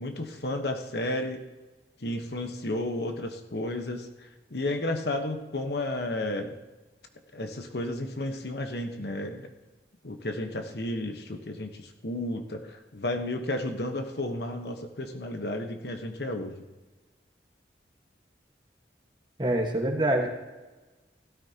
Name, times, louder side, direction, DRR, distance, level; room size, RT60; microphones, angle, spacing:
voice 1, 0.0-1.4 2.0-6.5 7.3-9.5 10.0-16.5, left 1 dB, 65° left, 5 dB, 1.2 m, -32 dB
voice 2, 19.4-20.3, right 1 dB, 25° right, 2 dB, 1.5 m, -25 dB
16.0 x 13.0 x 2.9 m, 1.2 s
head